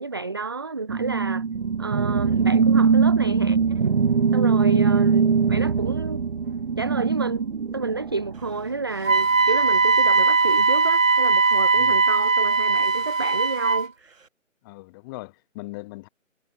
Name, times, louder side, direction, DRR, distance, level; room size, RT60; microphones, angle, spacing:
voice 1, 0.0-1.4 1.8-3.9 4.3-6.2 6.8-7.4 7.7-14.1, right 4 dB, 20° right, 0.8 m, -30 dB
sound 1, 0.9-8.7, right 5 dB, 40° right, 1.7 m, -21 dB
Wind instrument woodwind instrument, 9.0-13.9, right 4 dB, 75° right, 1.7 m, -19 dB
voice 2, 14.6-16.1, left 22 dB, 15° left, 7.6 m, -39 dB
figure-of-eight pair, 160°, 40 cm